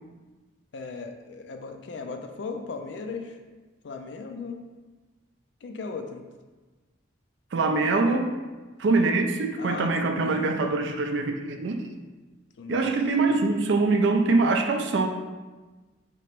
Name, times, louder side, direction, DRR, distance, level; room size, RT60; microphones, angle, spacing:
voice 1, 0.7-3.4 3.8-4.6 5.6-6.2 9.6-10.4 12.6-12.9, left 4 dB, 60° left, 6 dB, 0.4 m, -37 dB
voice 2, 7.5-8.3 8.8-11.9 12.7-15.1, right 3 dB, 60° right, 5 dB, 0.4 m, -23 dB
4.4 x 2.9 x 3.0 m, 1.3 s
head